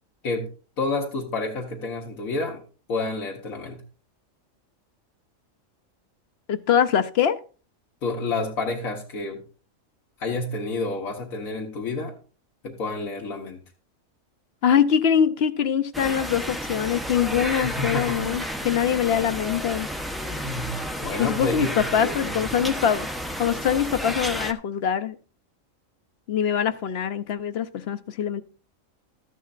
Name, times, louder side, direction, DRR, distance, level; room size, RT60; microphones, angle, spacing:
voice 1, 0.8-2.6 2.9-3.8 8.0-9.4 10.2-12.1 12.6-13.6 17.6-18.3 20.2-22.6, left 3 dB, 90° left, 0 dB, 1.7 m, -29 dB
voice 2, 6.5-7.4 14.6-19.9 21.2-23.1 23.4-25.2 26.3-28.4, left 8 dB, 55° left, 13 dB, 0.8 m, -23 dB
sound 1, 15.9-24.5, equal, ahead, 0.5 m, -31 dB
13.0 x 11.0 x 2.5 m, 0.37 s
omnidirectional pair, 1.4 m